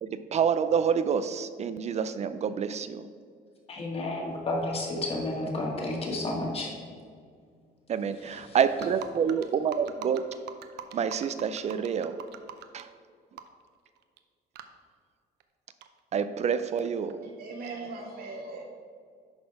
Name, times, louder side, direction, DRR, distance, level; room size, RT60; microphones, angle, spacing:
voice 1, 0.0-3.0 7.9-10.3 10.9-12.2 12.7-12.9 16.1-17.2, right 7 dB, 40° right, 12 dB, 0.4 m, -28 dB
voice 2, 3.7-6.7 8.2-8.6, left 2 dB, 35° left, -1 dB, 2.0 m, -31 dB
sound 1, 8.8-12.8 13.4-13.6 13.9-14.2 14.5-14.6 15.4-15.5 15.8-17.1, right 11 dB, 80° right, 0.7 m, -42 dB
voice 3, 17.2-18.6, right 3 dB, 60° right, 0 dB, 1.9 m, -39 dB
11.0 x 4.2 x 4.7 m, 2.1 s
cardioid pair, 110°, 17 cm